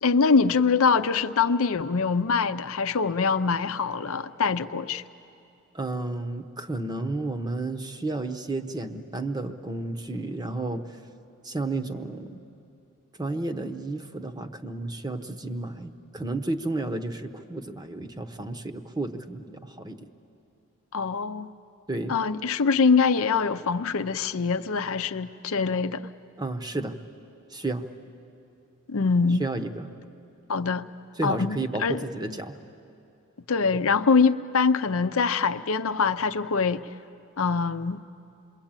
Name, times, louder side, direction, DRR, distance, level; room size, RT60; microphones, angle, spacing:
voice 1, 0.0-5.0 20.9-21.5 22.1-26.1 28.9-29.5 30.5-30.9 31.2-32.0 33.5-36.9 37.4-38.0, left 5 dB, 65° left, 0.6 m, -24 dB
voice 2, 5.7-10.9 11.4-12.4 13.2-20.1 21.9-22.2 26.4-27.0 27.5-27.9 29.4-29.9 31.2-32.6 33.7-33.9, right 2 dB, 20° right, 0.9 m, -32 dB
27.5 x 22.0 x 8.9 m
head